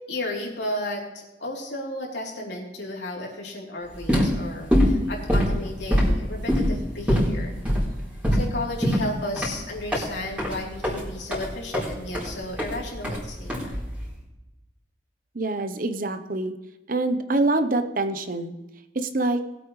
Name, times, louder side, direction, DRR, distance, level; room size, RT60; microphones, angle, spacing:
voice 1, 0.1-7.6 8.3-13.8, left 1 dB, 85° left, -2 dB, 3.4 m, -33 dB
sound 1, 3.9-14.1, equal, 10° right, 3.8 m, -24 dB
voice 2, 15.3-16.5 16.9-18.5 18.9-19.4, right 2 dB, 50° right, 8 dB, 0.9 m, -25 dB
20.5 x 8.4 x 3.2 m, 1.0 s
head